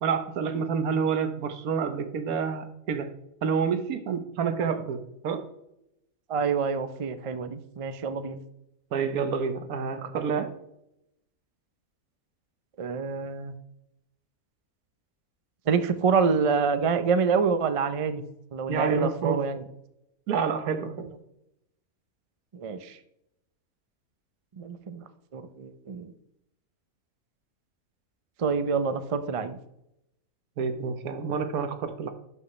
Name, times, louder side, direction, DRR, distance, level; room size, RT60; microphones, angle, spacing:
voice 1, 0.0-3.1 3.4-5.4 8.9-10.5 18.7-19.4 20.3-21.1 30.6-32.1, right 6 dB, 80° right, 8 dB, 1.4 m, -28 dB
voice 2, 6.3-8.4 12.8-13.5 15.7-18.2 18.5-19.6 22.5-23.0 24.6-25.0 25.3-26.1 28.4-29.6, right 5 dB, 55° right, 10 dB, 0.3 m, -27 dB
12.0 x 5.5 x 3.2 m, 0.81 s
omnidirectional pair, 1.5 m